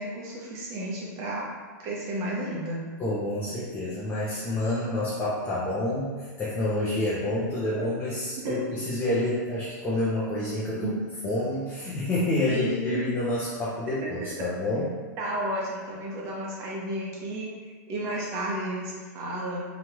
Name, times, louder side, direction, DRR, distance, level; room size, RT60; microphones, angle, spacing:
voice 1, 0.0-1.4 1.8-2.8 8.4-8.6 10.7-11.0 12.5-13.0 14.2-14.3 15.2-19.6, right 1 dB, 30° right, -5 dB, 0.8 m, -32 dB
voice 2, 3.0-10.9 11.2-14.9, left 1 dB, 15° left, -9 dB, 0.5 m, -28 dB
2.9 x 2.3 x 3.0 m, 1.4 s
supercardioid pair, 155°, 10 cm